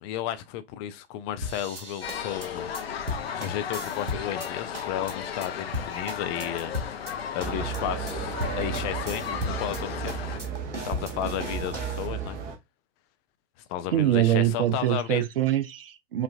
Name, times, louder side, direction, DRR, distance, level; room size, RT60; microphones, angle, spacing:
voice 1, 0.0-3.0 3.3-7.0 7.3-10.1 10.4-10.5 10.8-12.4 13.7-15.2, left 11 dB, 25° left, 0.4 m, -33 dB
sound 1, 1.4-4.5 4.7-5.1 5.4-5.5 5.7-7.1 7.4-7.8 8.1-8.2 8.4-9.8 10.1-12.1, left 2 dB, 85° right, 1.1 m, -36 dB
sound 2, 2.0-10.4, left 8 dB, 60° left, 0.7 m, -35 dB
sound 3, 7.4-12.5, right 7 dB, 25° right, 0.9 m, -34 dB
voice 2, 13.9-16.2, right 12 dB, 55° right, 0.6 m, -24 dB
5.2 x 2.4 x 2.6 m
figure-of-eight pair, 100°, 35 cm